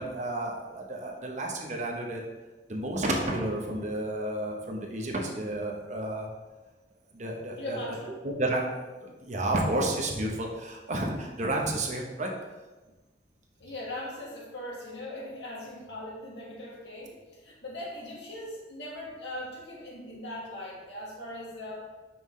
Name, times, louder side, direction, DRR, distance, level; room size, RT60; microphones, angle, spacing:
voice 1, 0.0-2.2 2.7-6.3 7.1-7.8 8.2-12.3, right 1 dB, 40° right, 0 dB, 0.9 m, -31 dB
voice 2, 7.6-8.2 13.6-21.9, left 1 dB, 80° left, -3 dB, 1.7 m, -40 dB
6.0 x 5.6 x 3.2 m, 1.2 s
head